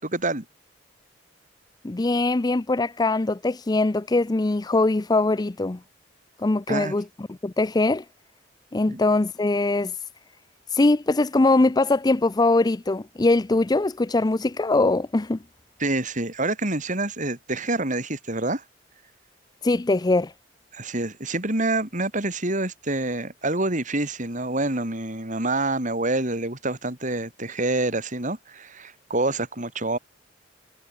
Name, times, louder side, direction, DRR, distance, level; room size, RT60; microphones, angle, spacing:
voice 1, 0.0-0.5 6.7-6.9 8.9-9.0 15.8-18.6 20.7-30.0, right 2 dB, 45° right, 5.5 m, -27 dB
voice 2, 1.8-5.8 6.4-8.0 8.7-9.9 10.7-15.4 19.6-20.3, left 2 dB, 20° left, 0.5 m, -22 dB
head